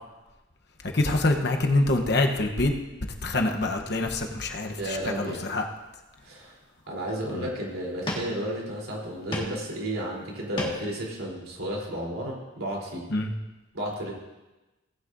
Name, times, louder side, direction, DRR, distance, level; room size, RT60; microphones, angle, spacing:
voice 1, 0.9-2.7 3.2-5.6 7.3-7.5 13.1-13.3, left 2 dB, 50° left, 3 dB, 1.0 m, -25 dB
sound 1, 4.6-4.8 5.3-6.0 6.5-6.6 7.0-7.4 8.0-8.7 9.0-9.7 10.0-11.0, left 1 dB, 25° left, 1.8 m, -36 dB
voice 2, 4.7-5.4 6.2-6.6 6.9-13.0 13.7-14.1, right 1 dB, 85° right, -3 dB, 3.7 m, -32 dB
18.0 x 9.8 x 2.7 m, 1.1 s
head